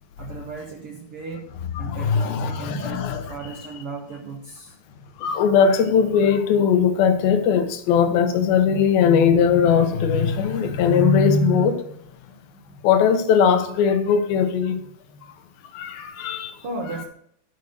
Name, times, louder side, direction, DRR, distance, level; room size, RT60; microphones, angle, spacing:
voice 1, 0.2-4.8 12.3-12.7 16.6-17.0, right 3 dB, 85° right, 1.2 m, -36 dB
voice 2, 1.8-3.2 5.2-11.8 12.8-14.8 15.7-16.6, left 6 dB, 75° left, 2.9 m, -19 dB
11.0 x 5.6 x 6.5 m
omnidirectional pair, 4.5 m